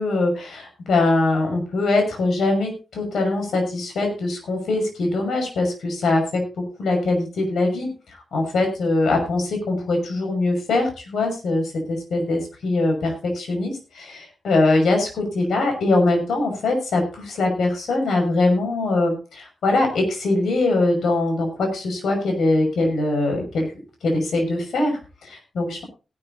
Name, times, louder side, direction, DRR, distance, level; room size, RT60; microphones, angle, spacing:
voice 1, 0.0-6.4 6.8-7.9 8.3-23.7 24.0-25.8, left 2 dB, 85° left, 4 dB, 6.1 m, -22 dB
17.5 x 12.5 x 2.8 m, 0.32 s
cardioid pair, 90°, 0 cm